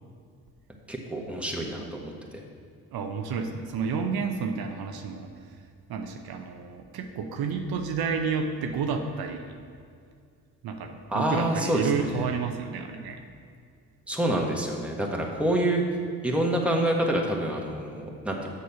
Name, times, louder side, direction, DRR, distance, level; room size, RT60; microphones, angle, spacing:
voice 1, 0.9-2.4 11.1-12.2 14.1-15.8 16.2-18.5, right 1 dB, 5° right, -1 dB, 1.5 m, -27 dB
voice 2, 2.9-5.3 5.9-9.6 10.6-13.2, right 5 dB, 70° right, 5 dB, 0.7 m, -30 dB
6.7 x 6.3 x 5.7 m, 2.3 s
supercardioid pair, 55°, 38 cm